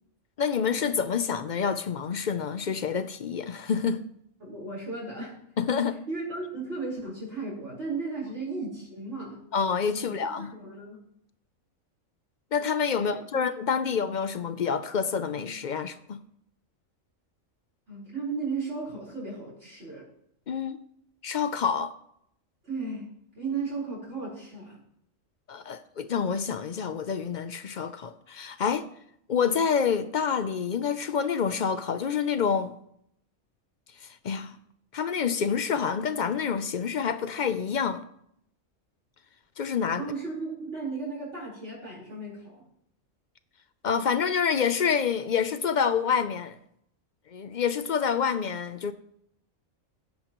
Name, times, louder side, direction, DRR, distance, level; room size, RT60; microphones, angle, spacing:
voice 1, 0.4-4.0 5.6-6.0 9.5-10.5 12.5-16.2 20.5-20.8 21.2-21.9 25.5-28.9 29.3-32.8 34.0-34.6 34.9-38.0 39.6-40.1 43.8-46.6 47.3-48.9, left 6 dB, 55° left, 0.5 m, -27 dB
voice 2, 4.4-5.4 6.1-9.4 10.0-11.0 13.0-13.2 17.9-20.1 22.6-23.1 23.3-24.8 40.0-42.6, right 4 dB, 60° right, 4.6 m, -35 dB
15.0 x 10.5 x 3.0 m
omnidirectional pair, 1.4 m